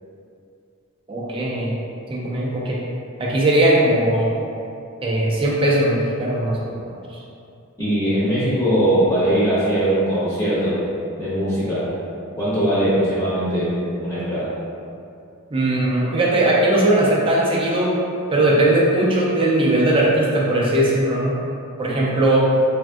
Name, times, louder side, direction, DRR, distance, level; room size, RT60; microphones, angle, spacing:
voice 1, 1.1-1.8 2.1-2.8 3.2-4.3 5.0-7.0 15.5-17.9 18.3-21.4 21.8-22.5, right 1 dB, 25° right, -5 dB, 0.4 m, -19 dB
voice 2, 7.8-10.8 11.2-11.9 12.3-14.5, right 1 dB, 10° left, -13 dB, 0.7 m, -20 dB
3.4 x 2.5 x 2.3 m, 2.6 s
head